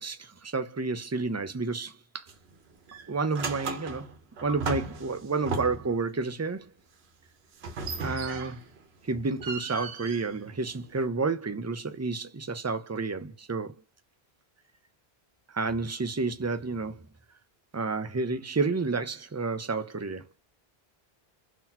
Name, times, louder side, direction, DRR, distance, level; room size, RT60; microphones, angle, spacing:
voice 1, 0.0-2.3 3.1-4.1 4.4-6.7 8.0-8.6 9.0-13.7 15.5-17.0 17.7-20.3, right 4 dB, 25° right, 0.3 m, -30 dB
sound 1, 2.3-2.5 2.9-6.0 7.6-8.8 9.1-11.0, right 4 dB, 85° right, 1.1 m, -36 dB
3.9 x 2.9 x 2.7 m
omnidirectional pair, 1.1 m